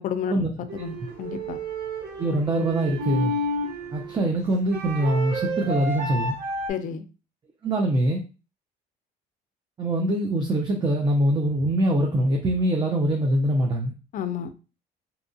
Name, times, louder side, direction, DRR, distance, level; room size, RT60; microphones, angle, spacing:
voice 1, 0.0-1.6 6.7-7.0 14.1-14.5, left 8 dB, 50° left, 11 dB, 0.4 m, -31 dB
sound 1, 0.7-6.7, right 1 dB, 70° right, 0.8 m, -31 dB
voice 2, 2.2-3.3 3.9-6.4 7.6-8.2 9.8-13.9, right 1 dB, 25° right, 1 dB, 0.5 m, -23 dB
2.7 x 2.2 x 2.6 m, 0.33 s
cardioid pair, 110°, 17 cm